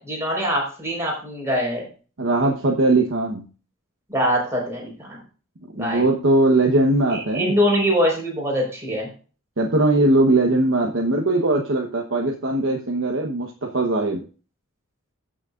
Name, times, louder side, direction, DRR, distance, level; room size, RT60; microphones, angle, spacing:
voice 1, 0.0-1.8 4.1-5.2 5.7-6.1 7.1-9.1, equal, 15° right, -2 dB, 4.5 m, -23 dB
voice 2, 2.2-3.5 5.7-7.6 9.6-14.2, right 2 dB, 65° right, 0 dB, 1.1 m, -20 dB
15.5 x 6.3 x 2.5 m, 0.37 s
head